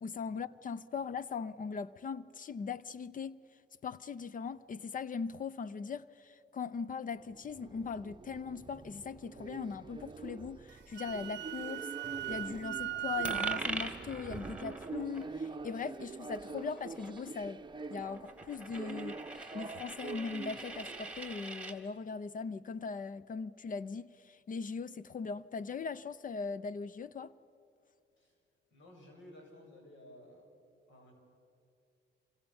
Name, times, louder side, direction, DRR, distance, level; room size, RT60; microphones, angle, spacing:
voice 1, 0.0-3.4 3.8-11.9 12.3-17.6 17.9-19.2 19.5-27.3, left 5 dB, 40° left, 0.7 m, -40 dB
sound 1, 7.2-21.3, right 4 dB, 25° right, 0.9 m, -46 dB
Wind instrument woodwind instrument, 10.7-13.6, right 14 dB, 65° right, 0.7 m, -38 dB
Coin (dropping), 13.2-21.8, right 2 dB, 5° right, 2.6 m, -43 dB
voice 2, 28.7-30.5 30.9-31.1, left 1 dB, 75° left, 7.1 m, -55 dB
27.5 x 25.0 x 7.2 m
cardioid pair, 90°, 20 cm